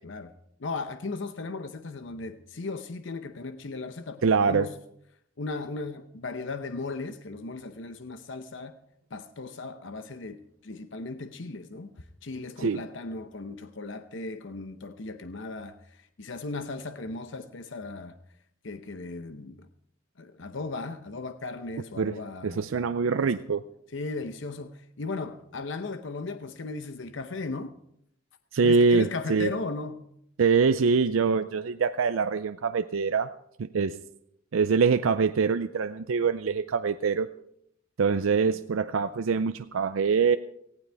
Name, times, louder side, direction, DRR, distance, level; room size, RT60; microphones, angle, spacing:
voice 1, 0.6-4.7 5.4-8.7 9.1-11.9 12.2-18.1 18.6-19.7 20.2-22.7 23.2-23.3 23.9-27.7 28.6-30.0, left 3 dB, 65° left, 0.8 m, -36 dB
voice 2, 4.2-4.7 12.6-12.8 22.0-22.1 22.4-23.6 28.5-29.5 30.4-33.3 33.6-34.0 34.5-37.3 38.0-40.4, right 5 dB, 85° right, 0.5 m, -24 dB
18.5 x 15.0 x 3.4 m
head